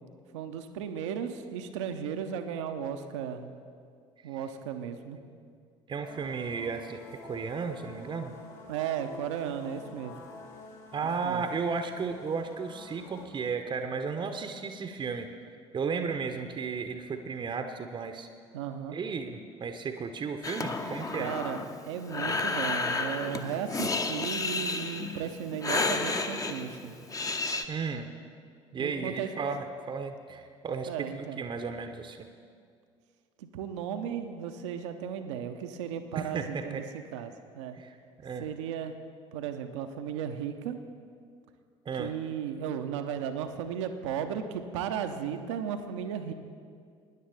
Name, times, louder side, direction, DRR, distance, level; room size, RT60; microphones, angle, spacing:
voice 1, 0.3-3.5 4.2-5.2 8.7-10.1 11.0-11.4 18.5-19.0 21.2-26.9 28.8-29.3 30.9-31.4 33.4-37.8 38.4-38.9 39.3-40.8 42.0-46.3, right 8 dB, 70° right, 7 dB, 0.7 m, -35 dB
voice 2, 5.9-8.3 10.9-15.3 15.7-18.3 18.9-21.3 27.7-28.1 28.7-32.2 36.1-36.8 37.7-38.0 38.2-38.5 41.9-42.1, right 5 dB, 30° right, 7 dB, 0.8 m, -34 dB
sound 1, 6.0-13.3, left 3 dB, 60° left, 2.0 m, -49 dB
Breathing, 20.4-27.7, left 3 dB, 20° left, 0.8 m, -32 dB
20.0 x 10.0 x 3.4 m, 2.2 s
figure-of-eight pair, 55°, 16 cm